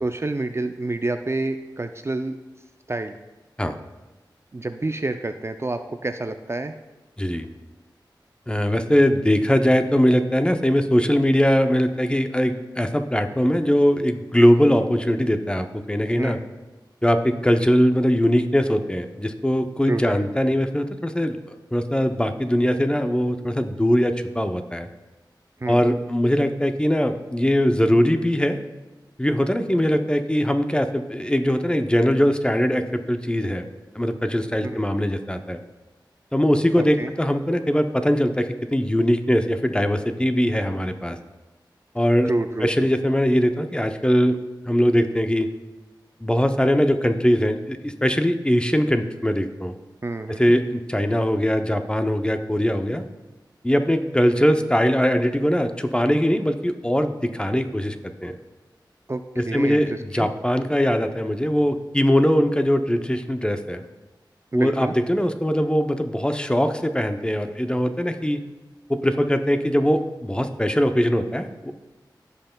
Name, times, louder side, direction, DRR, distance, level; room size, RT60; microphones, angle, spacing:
voice 1, 0.0-2.4 2.9-3.2 4.5-6.7 16.1-16.4 19.9-20.2 25.6-25.8 34.6-34.8 36.8-37.1 42.3-42.9 50.0-50.4 59.1-60.3 64.5-64.9, right 2 dB, 35° right, 8 dB, 0.4 m, -28 dB
voice 2, 7.2-7.5 8.5-16.4 17.0-24.9 25.7-28.6 29.2-33.7 33.9-35.6 36.3-41.2 41.9-42.3 42.6-44.4 44.7-45.5 46.2-49.7 50.4-53.0 53.6-58.0 58.2-58.4 59.4-63.8 64.5-68.4 68.9-71.7, equal, 10° left, 7 dB, 0.6 m, -21 dB
16.0 x 5.5 x 2.2 m, 1.1 s
wide cardioid pair, 50°, 8 cm